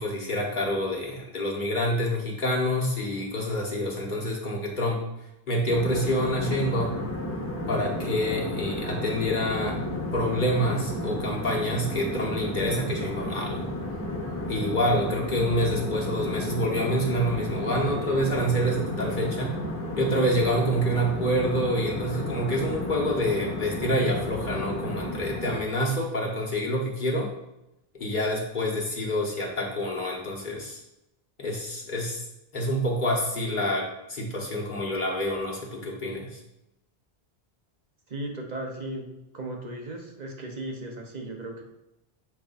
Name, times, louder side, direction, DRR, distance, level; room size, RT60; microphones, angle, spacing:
voice 1, 0.0-5.0 5.5-6.9 7.7-9.8 10.1-13.7 14.5-19.5 20.0-27.3 28.0-30.8 31.4-32.2 32.5-36.4, equal, 50° left, -2 dB, 1.4 m, -27 dB
sound 1, 5.7-25.6, left 1 dB, 15° left, 0.8 m, -32 dB
voice 2, 38.1-39.1 39.3-41.6, right 1 dB, 45° right, 1 dB, 1.0 m, -36 dB
7.1 x 5.4 x 2.6 m, 0.87 s
omnidirectional pair, 1.0 m